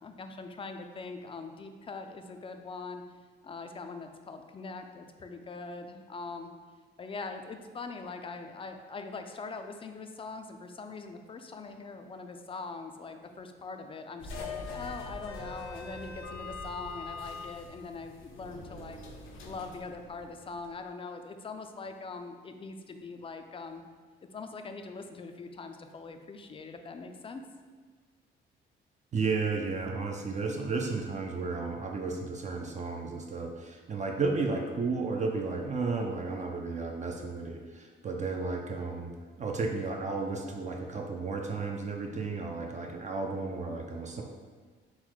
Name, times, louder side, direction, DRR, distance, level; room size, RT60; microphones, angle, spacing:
voice 1, 0.0-3.0 3.4-6.5 7.0-19.0 19.4-23.8 24.3-27.4, left 4 dB, 30° left, 6 dB, 0.3 m, -42 dB
sound 1, 14.2-20.7, left 3 dB, 80° left, 0.6 m, -42 dB
voice 2, 29.1-39.1 39.4-44.2, right 4 dB, 35° right, 1 dB, 0.4 m, -33 dB
3.9 x 2.1 x 4.4 m, 1.5 s
cardioid pair, 90°, 20 cm